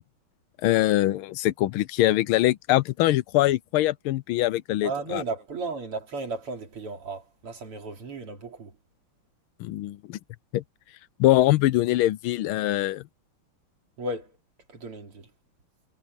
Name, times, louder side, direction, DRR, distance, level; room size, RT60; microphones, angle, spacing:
voice 1, 0.6-5.2 9.6-10.2 10.5-10.6 11.2-13.0, left 15 dB, 75° left, 1.4 m, -23 dB
voice 2, 4.8-8.7 14.0-14.3 14.7-15.3, right 2 dB, 85° right, 4.3 m, -34 dB
omnidirectional pair, 2.4 m